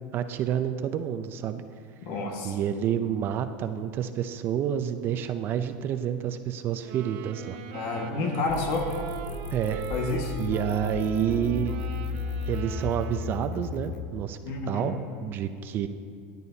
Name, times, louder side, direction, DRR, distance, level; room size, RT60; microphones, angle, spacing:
voice 1, 0.1-1.6 2.4-7.6 9.5-9.8 10.4-11.8 12.5-14.4 14.7-15.9, right 9 dB, 40° right, 9 dB, 0.5 m, -29 dB
voice 2, 2.0-2.6 7.7-8.9 9.9-10.4 14.4-14.9, left 3 dB, 60° left, 2 dB, 1.6 m, -29 dB
sound 1, 6.8-13.6, right 7 dB, 65° right, 0.8 m, -41 dB
sound 2, 8.5-14.1, left 5 dB, 35° left, 0.5 m, -34 dB
13.5 x 10.5 x 2.8 m, 2.3 s
supercardioid pair, 140°, 6 cm